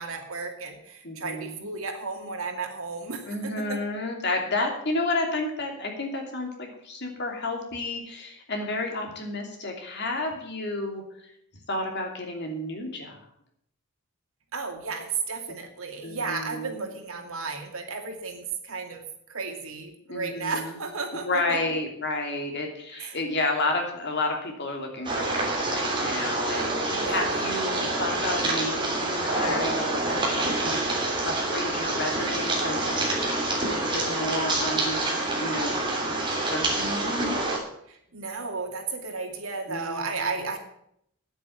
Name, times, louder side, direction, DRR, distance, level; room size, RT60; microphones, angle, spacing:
voice 1, 0.0-3.8 14.5-21.7 22.9-23.2 26.9-27.4 37.9-40.6, right 4 dB, 80° right, 3 dB, 2.5 m, -34 dB
voice 2, 1.0-1.7 3.3-11.0 11.7-13.2 16.0-16.8 20.1-20.8 21.1-37.4 39.7-40.3, left 2 dB, 55° left, 2 dB, 2.9 m, -31 dB
sound 1, 25.0-37.6, right 2 dB, 20° right, 3.1 m, -27 dB
9.6 x 8.3 x 9.3 m, 0.73 s
head